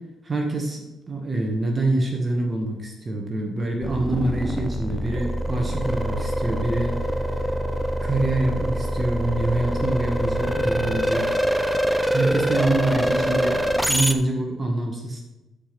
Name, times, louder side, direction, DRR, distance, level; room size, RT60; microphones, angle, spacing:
voice 1, 0.2-7.1 8.0-11.4 12.1-13.6 13.9-15.2, right 2 dB, 30° right, 1 dB, 1.9 m, -25 dB
sound 1, 3.8-14.1, equal, 5° right, 0.8 m, -24 dB
11.5 x 5.4 x 6.0 m, 1.0 s
cardioid pair, 90°, 0 cm